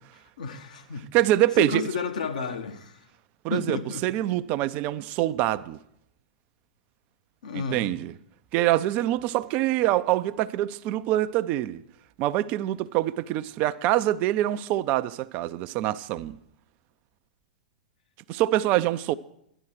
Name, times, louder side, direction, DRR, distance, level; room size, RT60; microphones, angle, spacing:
voice 1, 0.4-1.1 1.6-3.0 3.5-4.1 7.4-7.9, left 4 dB, 65° left, 1.1 m, -32 dB
voice 2, 1.1-1.8 3.4-5.8 7.5-8.1 8.5-11.8 12.2-16.3 18.3-19.1, right 14 dB, 35° right, 0.4 m, -25 dB
13.0 x 11.0 x 4.6 m
figure-of-eight pair, 100°, 4 cm